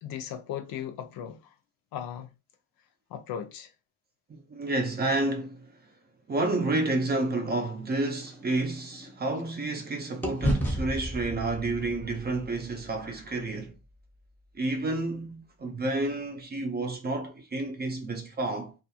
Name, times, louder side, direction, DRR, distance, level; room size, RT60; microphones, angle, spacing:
voice 1, 0.0-1.4 1.9-2.3 3.1-3.7, left 9 dB, 75° left, 0.6 m, -37 dB
voice 2, 4.3-5.8 6.3-13.8 14.5-18.7, right 2 dB, 30° right, 0.5 m, -30 dB
sound 1, 7.5-9.8 10.2-14.5, equal, 5° left, 0.7 m, -34 dB
2.4 x 2.3 x 2.7 m
cardioid pair, 130°, 35 cm